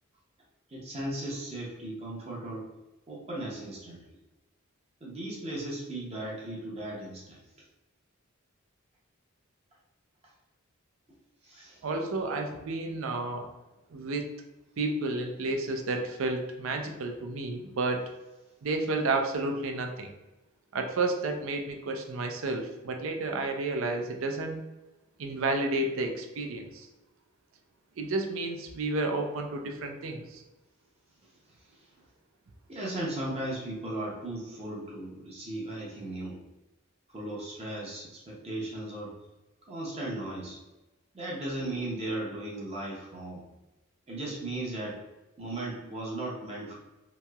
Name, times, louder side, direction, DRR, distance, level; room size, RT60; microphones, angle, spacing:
voice 1, 0.7-2.6 3.1-4.0 5.0-7.4 11.4-11.8 32.7-36.4 37.1-39.1 39.7-40.6 41.1-43.4 44.1-45.0 45.4-46.8, right 1 dB, 30° right, -4 dB, 0.6 m, -36 dB
voice 2, 11.8-13.5 13.9-14.3 14.8-18.1 18.6-20.1 20.7-24.7 25.2-26.9 28.0-30.4, right 2 dB, 65° right, 4 dB, 0.4 m, -31 dB
2.9 x 2.7 x 2.3 m, 1.0 s
head